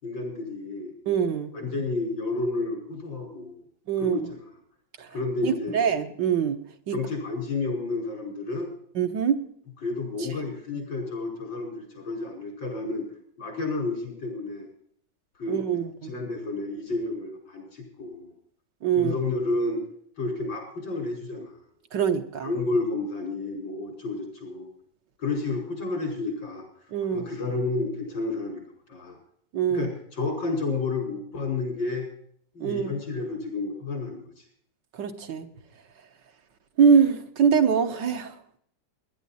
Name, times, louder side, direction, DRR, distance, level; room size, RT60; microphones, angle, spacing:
voice 1, 0.0-0.9 1.5-3.6 4.0-4.5 5.1-5.8 6.9-8.7 9.8-13.1 13.4-14.7 15.4-18.3 18.9-19.8 20.2-21.5 22.4-24.7 25.2-26.6 27.1-29.2 29.7-32.1 32.5-34.4, left 3 dB, 90° left, 1 dB, 6.0 m, -31 dB
voice 2, 1.1-1.5 3.9-4.2 5.4-6.6 6.9-7.0 9.0-9.4 15.5-16.1 18.8-19.1 21.9-22.5 26.9-27.3 29.5-29.9 32.6-32.9 35.0-35.5 36.8-38.3, right 7 dB, 70° right, 6 dB, 1.8 m, -23 dB
19.0 x 11.0 x 4.2 m, 0.64 s
omnidirectional pair, 2.0 m